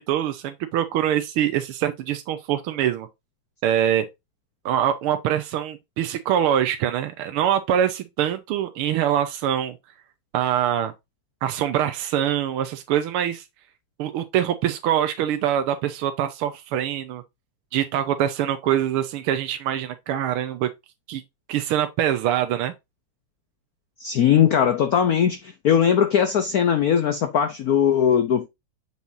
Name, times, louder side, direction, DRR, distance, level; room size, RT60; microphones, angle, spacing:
voice 1, 0.0-3.1 3.6-4.1 4.6-9.8 10.3-10.9 11.4-13.4 14.0-17.2 17.7-20.7 21.1-21.2 21.5-22.7, right 10 dB, 85° right, 1.7 m, -24 dB
voice 2, 24.0-28.5, left 8 dB, 60° left, 1.0 m, -20 dB
7.7 x 5.6 x 2.7 m
omnidirectional pair, 2.4 m